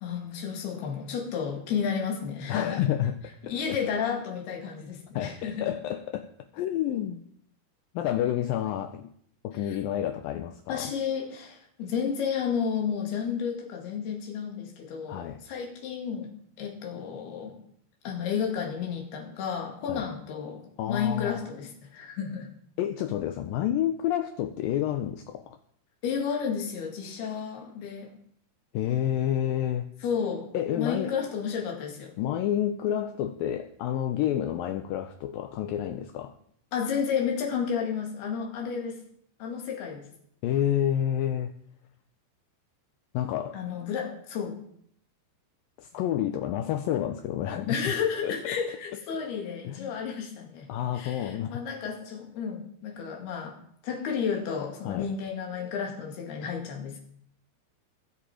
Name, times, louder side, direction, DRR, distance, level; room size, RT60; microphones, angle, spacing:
voice 1, 0.0-2.8 3.4-5.7 9.7-9.8 10.4-10.5 10.7-16.3 16.6-17.6 18.0-22.5 26.0-28.1 30.0-30.5 30.8-32.1 36.7-39.0 39.4-40.1 43.5-44.6 47.7-50.7 51.0-53.6 53.8-57.0, left 7 dB, 70° left, 1 dB, 4.3 m, -32 dB
voice 2, 2.5-3.2 3.7-3.8 5.1-7.2 7.9-9.1 9.4-10.9 15.1-15.4 19.9-20.0 20.8-21.4 22.8-25.6 28.7-29.9 30.5-31.1 32.2-36.3 40.4-41.5 43.1-43.6 45.8-47.9 48.2-48.6 49.6-49.9 50.7-51.6 54.9-55.1, left 11 dB, 85° left, 9 dB, 2.0 m, -29 dB
22.0 x 7.7 x 5.0 m, 0.66 s
omnidirectional pair, 4.8 m